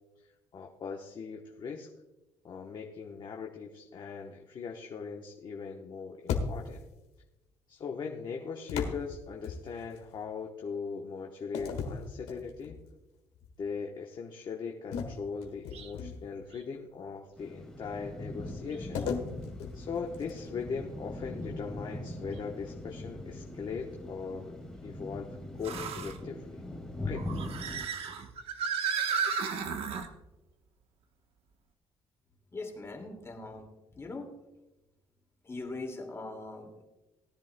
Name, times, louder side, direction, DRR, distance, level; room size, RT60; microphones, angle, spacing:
voice 1, 0.5-1.9 2.4-6.8 7.7-12.8 13.6-19.0 19.7-24.5 24.8-26.5 27.0-27.3, left 5 dB, 45° left, 1 dB, 1.0 m, -39 dB
sound 1, 6.3-6.9 8.7-10.0 11.5-12.9 13.3-13.6 14.9-16.4 18.9-20.6, left 5 dB, 80° left, 1.6 m, -37 dB
sound 2, 15.7-15.9 16.5-16.6 18.7-18.8 22.3-22.4 25.6-26.2 27.1-30.1, right 6 dB, 65° right, 1.1 m, -34 dB
sound 3, 17.4-27.8, left 1 dB, 5° left, 2.0 m, -41 dB
voice 2, 32.5-33.7 33.9-34.3 35.4-36.8, left 3 dB, 25° left, 2 dB, 2.3 m, -41 dB
18.5 x 10.5 x 2.2 m, 1.1 s
cardioid pair, 115°, 11 cm